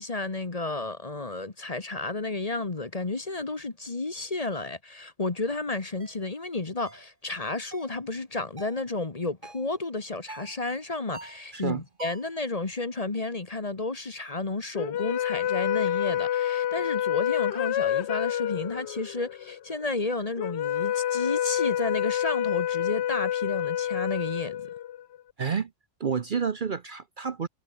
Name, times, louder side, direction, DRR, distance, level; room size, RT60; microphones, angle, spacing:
voice 1, 0.0-24.7, left 3 dB, 30° left, 1.5 m, -32 dB
sound 1, 6.0-6.2 6.8-7.1 7.7-8.0 8.6-8.8 9.4-9.7 10.3-10.6 11.1-11.5 12.0-12.3, right 3 dB, 80° right, 3.8 m, -45 dB
sound 2, 14.7-25.2, left 11 dB, 65° left, 0.9 m, -28 dB
voice 2, 25.4-25.7 26.0-27.5, right 6 dB, 45° right, 0.9 m, -29 dB
omnidirectional pair, 1.3 m